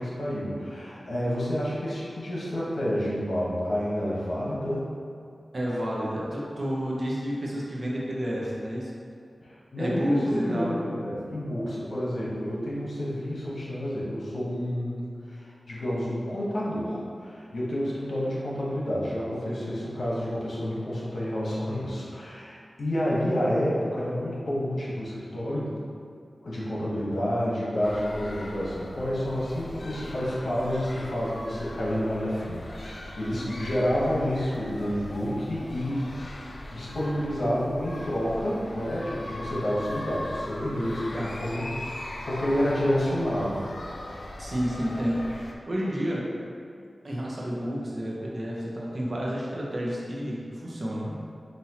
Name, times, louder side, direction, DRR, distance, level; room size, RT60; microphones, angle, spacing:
voice 1, 0.0-4.9 9.4-25.7 26.4-36.2 36.7-41.6 42.3-43.7, equal, 80° left, -7 dB, 1.0 m, -29 dB
voice 2, 5.5-8.9 9.7-10.7 19.5-19.6 33.3-33.6 36.8-36.9 41.1-41.3 44.4-46.3 47.0-51.1, equal, 50° right, -5 dB, 0.8 m, -30 dB
sound 1, 27.8-45.5, left 1 dB, 55° left, 0.4 m, -40 dB
5.7 x 2.6 x 2.8 m, 2.4 s
wide cardioid pair, 65°, 0 cm